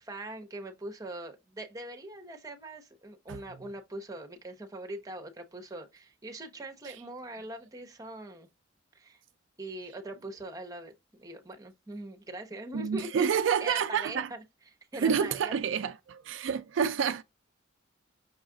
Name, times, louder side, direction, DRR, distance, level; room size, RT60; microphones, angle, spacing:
voice 1, 0.0-8.5 8.9-9.2 9.6-13.3 13.6-14.4 14.9-15.6, right 1 dB, 15° right, 0.8 m, -42 dB
voice 2, 12.7-14.3 15.0-17.2, right 7 dB, 65° right, 0.3 m, -28 dB
6.0 x 2.4 x 3.7 m
head